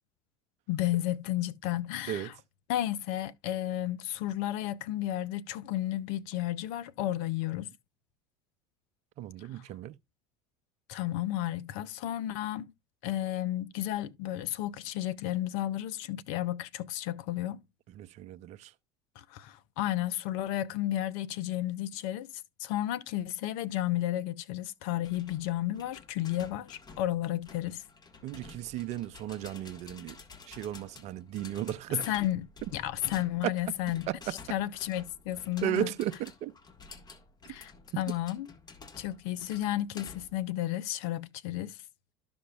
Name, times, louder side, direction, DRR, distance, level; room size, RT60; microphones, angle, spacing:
voice 1, 0.7-2.3 2.7-7.7 9.5-9.6 10.9-12.7 13.0-17.6 19.2-22.3 22.6-27.8 32.0-34.1 34.5-35.9 37.5-38.5 39.0-41.8, left 14 dB, 65° left, 0.6 m, -32 dB
voice 2, 9.2-9.9 17.9-18.7 28.2-30.2 30.5-32.1 33.4-33.5 34.1-34.4 35.6-36.5, right 12 dB, 50° right, 0.6 m, -35 dB
sound 1, 25.0-40.5, left 4 dB, 30° left, 1.6 m, -51 dB
12.5 x 5.2 x 2.3 m
hypercardioid pair, 70°, 14 cm